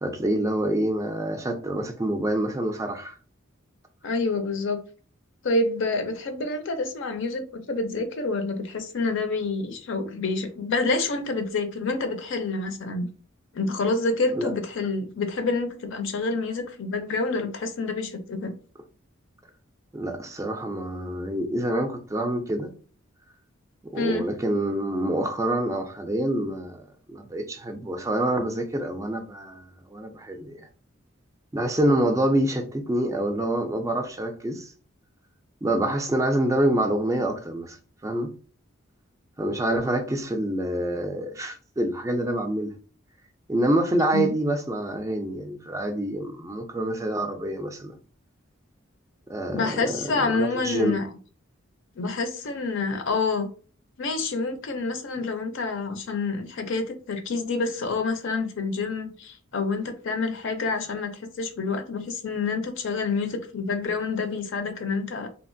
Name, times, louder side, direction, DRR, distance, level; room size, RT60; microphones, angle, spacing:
voice 1, 0.0-3.1 14.3-14.5 19.9-22.7 23.9-30.6 31.5-34.7 35.6-37.8 38.0-38.3 39.4-42.7 43.5-48.0 49.3-51.0, right 1 dB, 15° right, 0.3 m, -26 dB
voice 2, 4.0-4.8 5.4-13.1 13.5-18.6 24.0-24.3 44.1-44.3 49.5-51.1 52.0-53.5 54.0-65.3, left 3 dB, 65° left, 0.5 m, -28 dB
2.8 x 2.4 x 2.6 m
head